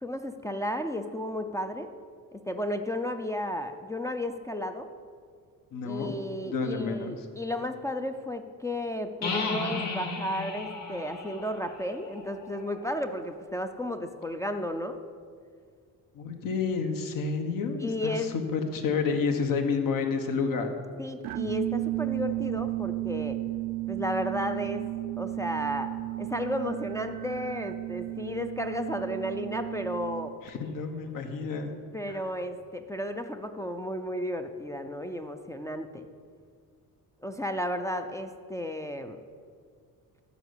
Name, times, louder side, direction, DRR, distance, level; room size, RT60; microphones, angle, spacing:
voice 1, 0.0-1.9 2.3-4.9 5.8-15.0 17.8-18.3 21.0-23.4 23.9-24.9 25.2-25.9 26.2-30.3 31.9-36.1 37.2-39.2, left 1 dB, 10° left, 5 dB, 0.4 m, -33 dB
voice 2, 5.7-6.2 6.4-7.1 16.1-20.8 30.4-31.7 32.1-32.2, left 5 dB, 65° left, 5 dB, 1.4 m, -30 dB
sound 1, 9.2-12.9, left 3 dB, 50° left, 2.4 m, -35 dB
sound 2, 21.2-30.5, right 18 dB, 75° right, 0.5 m, -33 dB
12.0 x 6.9 x 8.1 m, 2.1 s
cardioid pair, 170°, 35 cm